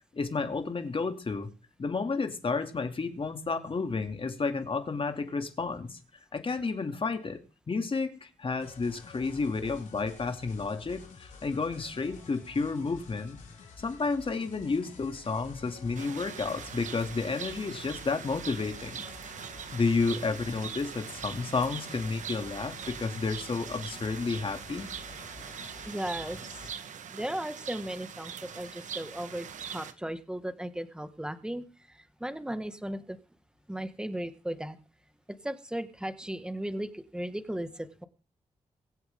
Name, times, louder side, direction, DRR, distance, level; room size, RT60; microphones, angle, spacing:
voice 1, 0.1-1.5 1.8-6.0 6.3-13.4 13.8-19.3 19.7-24.9, left 4 dB, 45° left, 2.5 m, -31 dB
sound 1, 8.6-26.7, left 5 dB, 90° left, 4.2 m, -50 dB
sound 2, 15.9-29.9, right 8 dB, 85° right, 1.3 m, -42 dB
voice 2, 25.8-26.8 27.1-33.2 33.7-34.8 35.4-38.1, right 1 dB, 5° right, 1.7 m, -36 dB
23.5 x 8.1 x 3.7 m
cardioid pair, 65°, 13 cm